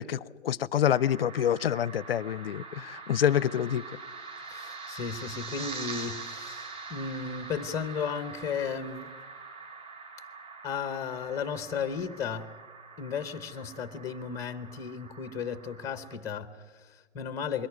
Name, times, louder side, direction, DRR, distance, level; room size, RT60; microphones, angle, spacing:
voice 1, 0.0-3.8, left 10 dB, 50° left, 23 dB, 0.6 m, -27 dB
sound 1, 0.8-16.2, right 4 dB, 15° right, 3.4 m, -44 dB
voice 2, 4.5-9.1 10.6-12.5 13.0-17.7, left 6 dB, 10° left, 12 dB, 0.8 m, -35 dB
22.0 x 17.0 x 9.6 m, 1.4 s
hypercardioid pair, 145°, 37 cm